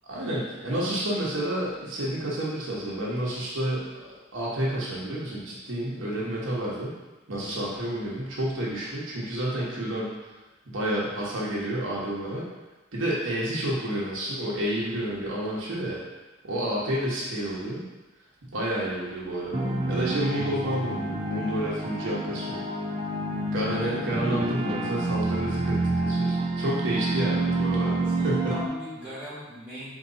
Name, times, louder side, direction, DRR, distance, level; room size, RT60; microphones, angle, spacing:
voice 1, 0.1-3.9 4.3-6.9 7.3-10.1 10.7-12.4 12.9-16.0 16.4-17.8 18.4-22.6 23.5-28.5, right 1 dB, 75° right, -6 dB, 1.0 m, -30 dB
sound 1, 19.5-28.7, right 2 dB, 25° right, 0.5 m, -28 dB
voice 2, 27.8-29.9, equal, 5° right, -9 dB, 1.5 m, -40 dB
4.0 x 2.9 x 3.8 m, 1.1 s
head